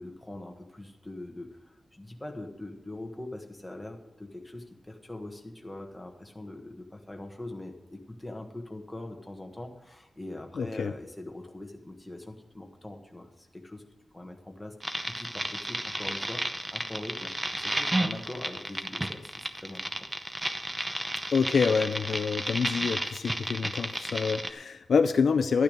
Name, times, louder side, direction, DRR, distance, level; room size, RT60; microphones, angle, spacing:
voice 1, 0.0-13.8 14.1-14.7 15.0-16.4 16.7-20.1, left 1 dB, 5° left, 2 dB, 1.3 m, -42 dB
voice 2, 10.6-10.9 21.3-25.6, left 5 dB, 60° left, 10 dB, 0.4 m, -26 dB
sound 1, 14.8-24.5, right 1 dB, 10° right, 0.7 m, -32 dB
12.0 x 9.5 x 5.2 m, 1.1 s
wide cardioid pair, 180°, 0 cm